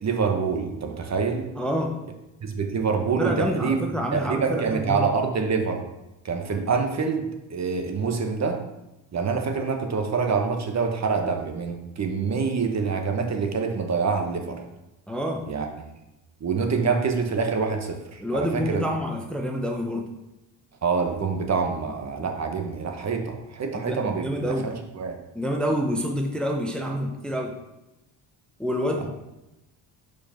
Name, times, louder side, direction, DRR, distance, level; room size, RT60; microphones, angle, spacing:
voice 1, 0.0-1.5 2.4-3.8 4.1-5.8 6.2-8.6 9.1-14.6 15.5-15.9 16.4-18.8 20.8-25.2 29.0-29.1, right 5 dB, 40° right, 4 dB, 1.0 m, -26 dB
voice 2, 1.5-2.0 3.2-5.0 15.1-15.4 18.2-20.1 23.9-24.7 25.3-27.5 28.6-29.1, equal, ahead, 2 dB, 0.7 m, -27 dB
5.0 x 4.7 x 5.6 m, 0.96 s
cardioid pair, 100°, 43 cm